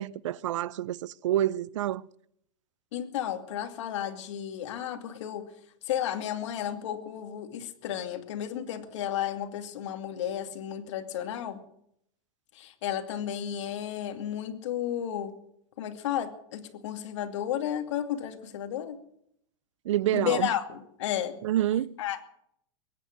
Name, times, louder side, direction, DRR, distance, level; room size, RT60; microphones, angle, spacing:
voice 1, 0.0-2.1 19.9-20.5 21.4-21.9, right 12 dB, 85° right, 0.6 m, -28 dB
voice 2, 2.9-5.5 5.9-11.6 12.5-15.3 15.8-19.0 20.1-21.4 22.0-22.2, left 10 dB, 75° left, 2.5 m, -33 dB
22.0 x 9.9 x 6.5 m
supercardioid pair, 145°, 15 cm